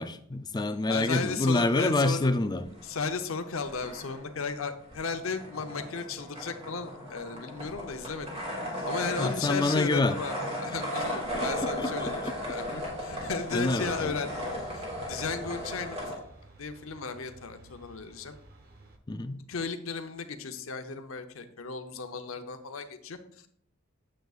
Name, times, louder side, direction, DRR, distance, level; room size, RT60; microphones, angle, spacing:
voice 1, 0.0-2.6 9.2-10.2 11.3-12.1 13.5-14.2 19.1-19.4, left 2 dB, 20° left, 0.4 m, -27 dB
voice 2, 0.9-2.3 2.8-8.4 8.9-16.2 16.6-18.4 19.5-23.5, left 4 dB, 75° left, 0.7 m, -35 dB
sound 1, 2.6-3.4 3.6-16.1, equal, 30° right, 2.2 m, -36 dB
sound 2, 12.8-19.0, right 1 dB, 45° right, 0.9 m, -52 dB
9.3 x 7.5 x 2.4 m
head